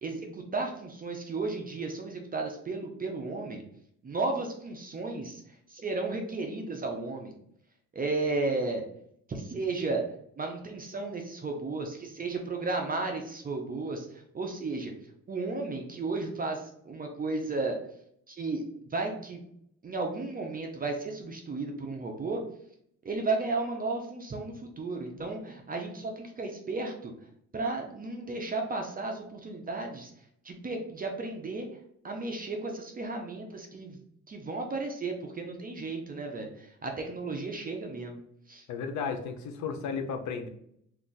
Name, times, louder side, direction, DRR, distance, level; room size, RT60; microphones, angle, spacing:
voice 1, 0.0-3.6 4.0-5.4 5.7-7.3 7.9-8.8 9.3-10.1 10.4-14.9 15.3-17.8 18.3-18.6 18.9-19.4 19.8-22.4 23.0-27.1 27.5-30.1 30.4-31.7 32.0-34.0 34.3-38.2 38.5-38.6, right 3 dB, 30° right, 3 dB, 0.5 m, -34 dB
voice 2, 38.7-40.5, left 5 dB, 70° left, 5 dB, 0.6 m, -34 dB
2.5 x 2.3 x 3.8 m, 0.69 s
cardioid pair, 90°, 30 cm